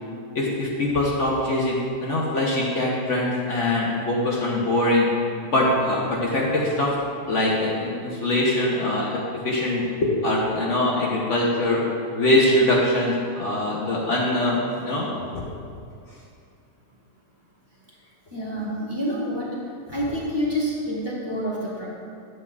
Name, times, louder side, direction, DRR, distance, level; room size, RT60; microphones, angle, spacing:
voice 1, 0.3-5.1 5.5-6.9 7.3-9.9 10.2-11.8 12.2-15.1 15.3-15.4, left 1 dB, 55° left, -4 dB, 1.1 m, -23 dB
voice 2, 18.3-19.6 19.9-21.9, equal, 15° right, -8 dB, 1.5 m, -27 dB
9.7 x 7.7 x 2.4 m, 2.4 s
omnidirectional pair, 1.6 m